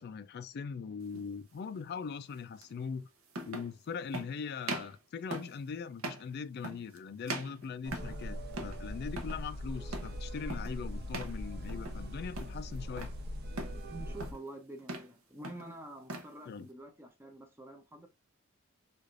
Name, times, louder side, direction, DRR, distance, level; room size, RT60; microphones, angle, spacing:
voice 1, 0.0-3.1 3.4-13.1 16.5-16.7, left 6 dB, 50° left, 0.3 m, -41 dB
sound 1, 1.1-1.3 2.6-2.7 3.3-3.7 4.1-4.3 4.6-5.0 5.3-5.6 6.0-6.3 6.6-7.0 7.3-8.2 8.5-8.8 9.1-9.4 9.9-10.2 10.5-10.8 11.1-11.4 11.7-12.1 12.3-13.2 13.6-13.8 14.2-14.5 14.8-15.1 15.4-16.3, right 2 dB, 85° right, 0.7 m, -41 dB
sound 2, 7.8-14.3, equal, 50° right, 0.6 m, -41 dB
voice 2, 13.9-18.1, right 2 dB, 10° right, 0.5 m, -48 dB
3.2 x 2.4 x 2.4 m
head